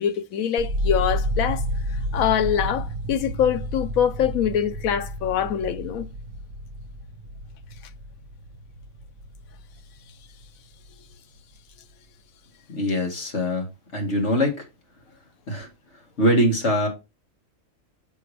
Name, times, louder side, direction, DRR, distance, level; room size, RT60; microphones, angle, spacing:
voice 1, 0.0-1.6 2.1-6.1, left 9 dB, 85° left, 1.1 m, -24 dB
sound 1, 0.6-10.6 10.9-11.6, equal, 65° right, 1.1 m, -31 dB
voice 2, 12.7-13.7 13.9-14.6 15.5-15.7 16.2-16.9, equal, 55° left, 2.3 m, -22 dB
7.0 x 5.8 x 3.3 m
omnidirectional pair, 1.4 m